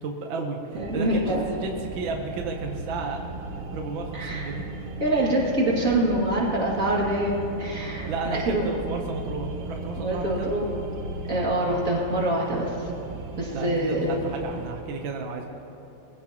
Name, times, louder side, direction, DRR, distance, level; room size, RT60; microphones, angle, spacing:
voice 1, 0.0-3.2 3.7-4.9 8.0-10.5 13.5-15.5, right 4 dB, 65° right, 2 dB, 1.3 m, -33 dB
voice 2, 0.7-1.4 4.1-4.5 5.0-8.7 10.0-10.6 11.2-12.9 13.4-14.2, right 1 dB, 25° right, -4 dB, 2.5 m, -25 dB
sound 1, 0.7-14.7, right 2 dB, 85° right, 2.8 m, -36 dB
22.0 x 15.5 x 3.0 m, 3.0 s
omnidirectional pair, 3.5 m